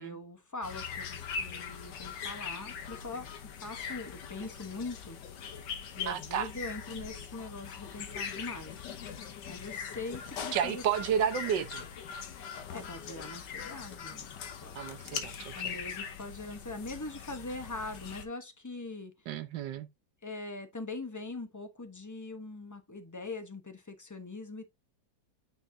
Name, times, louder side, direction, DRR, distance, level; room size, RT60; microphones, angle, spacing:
voice 1, 0.0-3.3 3.6-5.2 6.0-8.7 9.5-10.8 12.7-14.3 14.6-19.3 20.2-24.7, left 3 dB, 20° left, 0.5 m, -42 dB
sound 1, 0.6-18.2, left 6 dB, 75° left, 1.6 m, -41 dB
voice 2, 6.1-6.5 10.5-11.8 14.7-15.7 19.3-19.9, right 8 dB, 80° right, 1.5 m, -32 dB
9.0 x 4.3 x 2.7 m
omnidirectional pair, 1.9 m